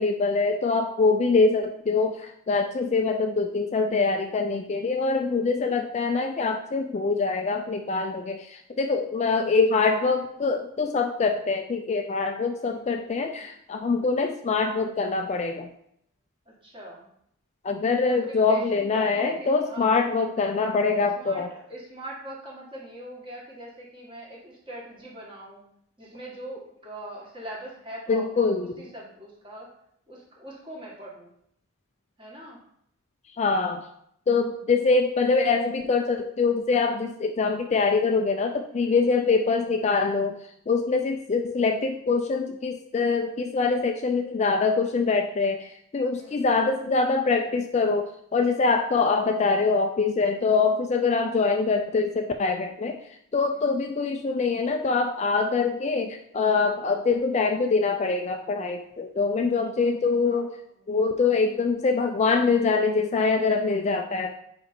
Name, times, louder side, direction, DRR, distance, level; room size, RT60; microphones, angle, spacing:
voice 1, 0.0-15.7 17.6-21.5 28.1-28.7 33.4-33.8 34.3-40.4 40.7-53.0 53.3-60.6 60.9-64.4, left 4 dB, 30° left, 5 dB, 0.3 m, -24 dB
voice 2, 16.6-17.1 18.1-20.4 21.0-25.6 26.0-29.7 30.1-31.3 32.2-32.6 38.7-39.0 46.2-46.5 53.5-53.7 60.2-60.5, right 1 dB, 25° right, -4 dB, 1.9 m, -42 dB
5.2 x 5.0 x 4.5 m, 0.71 s
head